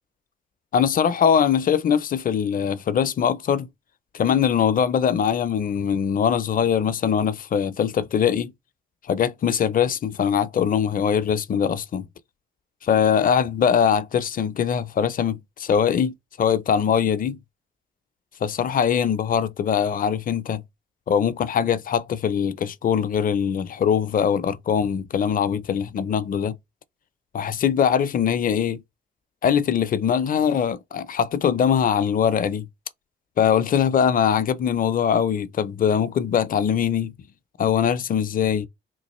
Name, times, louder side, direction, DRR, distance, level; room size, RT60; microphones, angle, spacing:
voice 1, 0.7-3.7 4.1-8.5 9.1-12.1 12.8-17.4 18.4-20.6 21.1-26.6 27.3-28.8 29.4-32.7 33.4-37.1 37.6-38.7, left 8 dB, 45° left, 0.5 m, -22 dB
3.8 x 2.5 x 3.0 m
cardioid pair, 90°, 20 cm